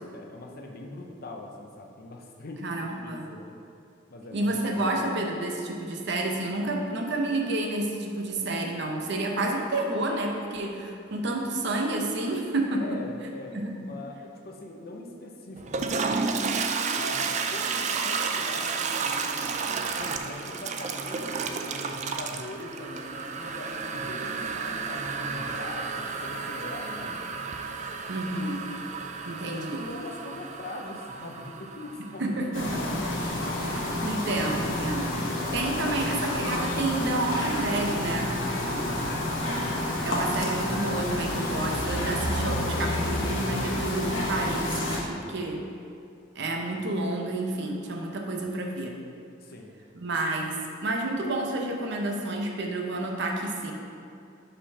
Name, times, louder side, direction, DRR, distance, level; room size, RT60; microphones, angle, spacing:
voice 1, 0.1-3.5 4.1-4.6 9.4-9.6 12.8-16.3 16.9-19.5 20.0-27.4 29.3-33.1 38.6-39.2 49.4-49.7, left 2 dB, 50° left, 1 dB, 0.7 m, -41 dB
voice 2, 2.6-3.3 4.3-13.0 13.5-13.8 28.1-28.7 29.2-29.8 32.0-32.8 33.7-38.5 40.0-45.6 46.4-49.0 49.9-53.7, right 2 dB, 60° right, 2 dB, 0.7 m, -30 dB
Toilet flush, 15.6-32.3, right 5 dB, 35° right, 0.3 m, -32 dB
sound 1, 32.5-45.0, left 1 dB, 75° left, 1.2 m, -29 dB
5.2 x 4.3 x 5.5 m, 2.5 s
head